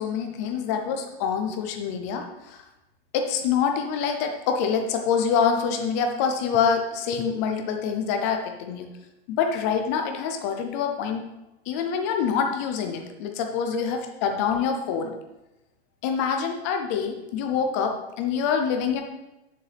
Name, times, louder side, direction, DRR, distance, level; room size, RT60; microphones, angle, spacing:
voice 1, 0.0-2.6 3.1-8.9 9.3-11.2 11.7-15.1 16.0-19.0, left 6 dB, 15° left, 4 dB, 0.4 m, -26 dB
8.7 x 6.8 x 3.3 m, 0.96 s
supercardioid pair, 165°, 33 cm